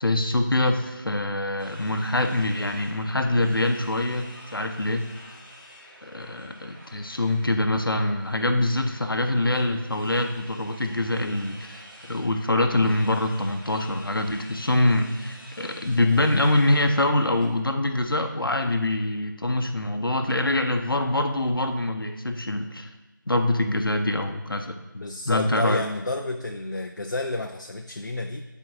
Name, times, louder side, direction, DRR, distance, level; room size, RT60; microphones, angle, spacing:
voice 1, 0.0-5.1 6.0-22.9 23.3-24.8 25.3-25.8, left 1 dB, 80° left, 5 dB, 0.8 m, -24 dB
sound 1, 1.6-17.5, equal, 75° right, 1.9 m, -48 dB
voice 2, 24.9-28.5, left 2 dB, 60° left, 4 dB, 0.4 m, -30 dB
11.5 x 4.5 x 2.7 m, 1.2 s
figure-of-eight pair, 170°, 11 cm